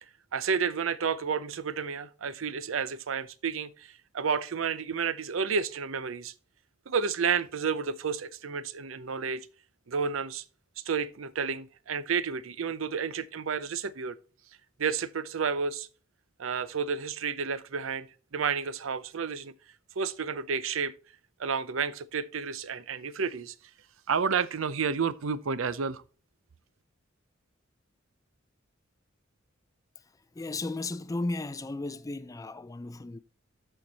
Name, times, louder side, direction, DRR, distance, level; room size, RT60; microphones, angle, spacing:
voice 1, 0.3-6.3 6.9-9.5 9.9-10.4 10.9-14.2 14.8-15.9 16.4-19.5 20.0-20.9 21.4-23.5 24.1-26.0, right 6 dB, 85° right, 0.6 m, -31 dB
voice 2, 30.3-33.2, left 2 dB, 15° left, 0.4 m, -35 dB
13.0 x 4.5 x 4.1 m
head